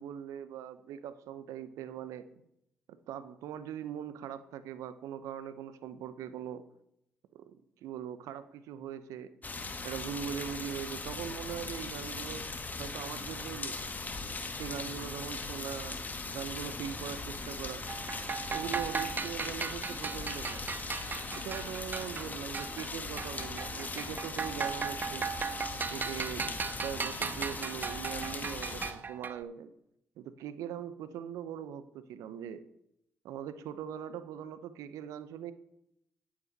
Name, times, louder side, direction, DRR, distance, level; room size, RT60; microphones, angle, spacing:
voice 1, 0.0-2.3 2.9-6.6 7.3-9.3 9.8-12.4 12.8-13.8 14.6-16.0 16.3-17.8 18.5-20.6 21.3-25.3 25.9-29.7 30.2-32.6 33.2-35.5, right 9 dB, 75° right, 12 dB, 0.7 m, -41 dB
sound 1, 9.4-28.9, left 3 dB, 30° left, 1.4 m, -39 dB
sound 2, 17.9-22.9 23.2-29.4, right 5 dB, 35° right, 0.5 m, -37 dB
8.8 x 8.7 x 4.0 m, 0.79 s
hypercardioid pair, 55°, 5 cm